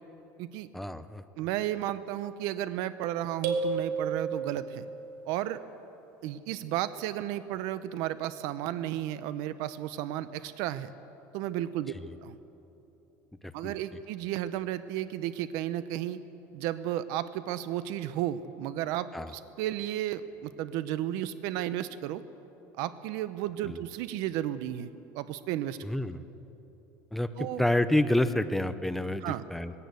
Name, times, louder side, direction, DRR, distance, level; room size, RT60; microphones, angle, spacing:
voice 1, 0.7-1.2 12.1-12.2 13.4-13.7 19.1-19.3 23.7-23.8 25.8-26.2 27.1-29.7, left 1 dB, 5° left, 11 dB, 0.7 m, -28 dB
voice 2, 1.4-4.9 5.3-5.6 6.2-10.9 11.3-11.9 12.2-12.4 13.5-16.2 16.5-22.2 22.8-24.9 25.1-25.8 27.4-27.6 29.2-29.4, right 12 dB, 70° right, 13 dB, 0.7 m, -33 dB
sound 1, 3.4-5.0, right 4 dB, 85° right, 2.4 m, -31 dB
19.5 x 17.0 x 8.2 m, 3.0 s
cardioid pair, 150°, 6 cm